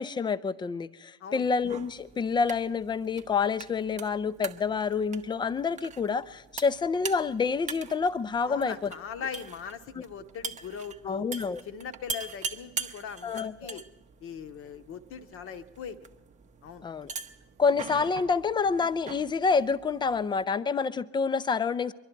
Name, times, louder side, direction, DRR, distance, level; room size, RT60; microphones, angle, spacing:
voice 1, 0.0-8.9 10.0-10.1 11.1-11.6 13.2-13.8 16.8-17.1 17.6-21.9, left 5 dB, 15° left, 16 dB, 0.4 m, -28 dB
voice 2, 1.2-1.5 8.5-11.2 11.7-13.8 14.2-16.0 16.6-16.9, left 7 dB, 40° left, 10 dB, 0.8 m, -40 dB
sound 1, 1.6-20.4, right 5 dB, 20° right, 0.7 m, -43 dB
23.5 x 11.5 x 4.5 m, 1.1 s
figure-of-eight pair, 70°, 34 cm